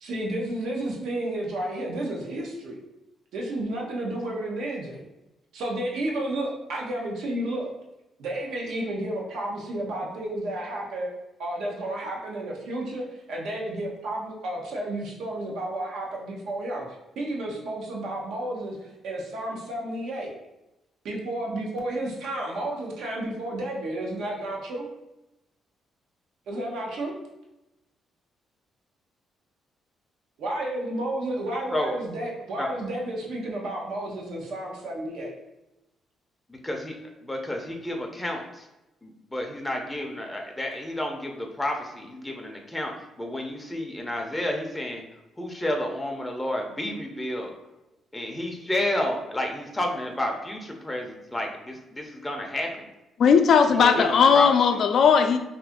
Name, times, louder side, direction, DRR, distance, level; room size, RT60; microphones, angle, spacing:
voice 1, 0.0-2.8 3.3-5.0 5.5-7.7 8.2-11.1 11.4-16.8 17.2-18.8 19.0-20.3 21.0-24.9 26.5-27.1 30.4-35.3 53.8-54.1, right 1 dB, 75° right, -2 dB, 0.8 m, -31 dB
voice 2, 36.5-38.7 39.0-47.6 48.1-52.8 53.7-54.8, left 1 dB, 10° left, 1 dB, 0.5 m, -31 dB
voice 3, 53.2-55.4, left 6 dB, 60° left, 7 dB, 0.3 m, -18 dB
2.7 x 2.5 x 3.5 m, 0.94 s
cardioid pair, 90°, 0 cm